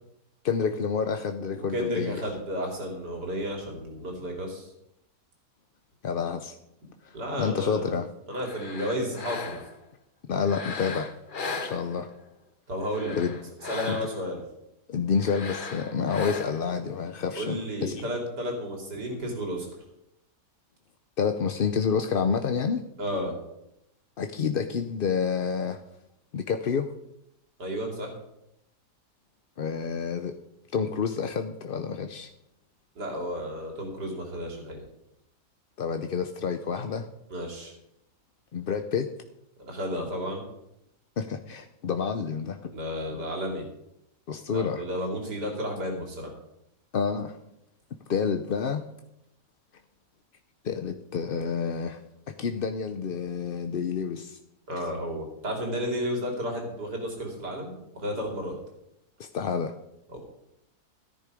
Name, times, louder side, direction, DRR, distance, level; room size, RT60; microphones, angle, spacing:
voice 1, 0.4-2.2 6.0-6.5 7.0-8.1 10.3-11.1 11.6-12.1 13.2-13.4 13.9-14.0 14.9-17.9 21.2-22.8 24.2-25.8 26.3-26.9 29.6-30.3 30.7-32.3 35.8-37.1 38.5-39.1 41.2-42.7 44.3-44.8 46.9-47.4 48.1-48.8 50.6-52.0 52.4-54.4 59.2-59.7, left 6 dB, 60° left, 7 dB, 0.6 m, -28 dB
voice 2, 1.4-4.7 7.1-7.8 8.3-9.6 12.7-13.2 13.7-14.4 17.4-19.7 23.0-23.4 27.6-28.1 33.0-34.8 37.3-37.7 39.6-40.4 42.7-43.6 44.5-46.3 54.7-58.5 60.1-60.2, equal, 75° right, 1 dB, 3.7 m, -32 dB
sound 1, 8.3-9.8 10.4-12.3 12.8-14.3 15.2-16.8, left 4 dB, 35° left, 1.0 m, -37 dB
14.0 x 10.5 x 5.0 m, 0.81 s
omnidirectional pair, 1.8 m